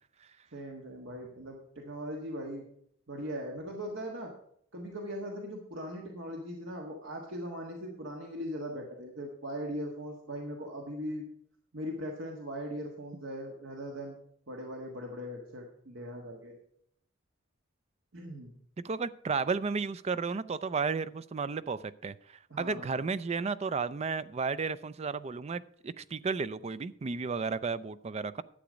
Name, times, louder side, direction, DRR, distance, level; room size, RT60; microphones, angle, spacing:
voice 1, 0.5-2.6 3.1-4.3 4.7-11.2 11.7-14.2 14.5-16.5 18.1-18.5 22.5-23.0, equal, 65° right, 0 dB, 1.5 m, -39 dB
voice 2, 18.8-28.4, right 4 dB, 30° right, 15 dB, 0.4 m, -33 dB
11.5 x 8.1 x 5.1 m, 0.69 s
head